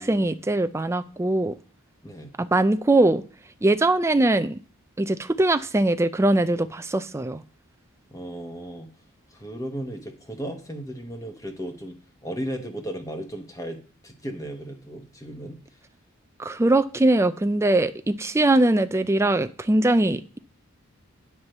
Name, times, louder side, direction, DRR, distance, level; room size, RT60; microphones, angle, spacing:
voice 1, 0.0-1.5 2.4-3.2 3.6-4.6 5.0-7.4 16.4-20.4, right 2 dB, 15° right, 0.4 m, -21 dB
voice 2, 2.0-2.3 8.1-8.9 9.3-13.8 14.0-15.6, equal, 15° left, 1.0 m, -35 dB
9.6 x 4.4 x 6.5 m
head